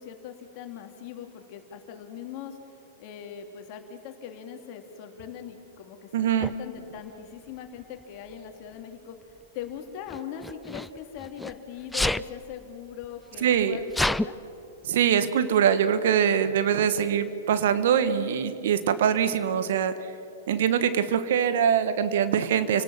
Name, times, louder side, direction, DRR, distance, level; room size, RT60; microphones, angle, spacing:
voice 1, 0.0-2.6 3.0-14.4 22.6-22.8, left 8 dB, 45° left, 5 dB, 3.2 m, -41 dB
voice 2, 6.1-6.5 13.4-13.8 14.8-19.9 20.5-22.8, right 8 dB, 60° right, 12 dB, 1.5 m, -23 dB
Sneeze, 6.4-6.5 7.7-8.0 10.1-11.5 11.9-12.3 13.0-13.1 13.3-14.3, left 1 dB, 5° left, 0.4 m, -28 dB
29.5 x 18.5 x 7.5 m, 2.8 s
figure-of-eight pair, 100°, 0 cm